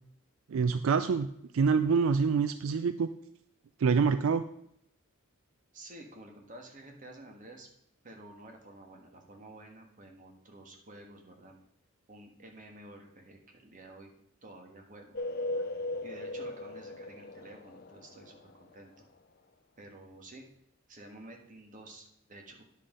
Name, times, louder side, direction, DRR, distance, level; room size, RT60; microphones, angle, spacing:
voice 1, 0.5-1.3 1.5-3.1 3.8-4.4, right 5 dB, 75° right, 11 dB, 0.4 m, -26 dB
voice 2, 5.7-7.7 8.0-11.6 12.1-14.1 14.4-15.1 15.5-15.6 16.0-19.1 19.8-20.4 20.9-22.6, right 1 dB, 40° right, 2 dB, 1.5 m, -51 dB
sound 1, 15.1-18.7, left 2 dB, 50° left, 0.6 m, -38 dB
9.9 x 5.6 x 5.0 m, 0.73 s
head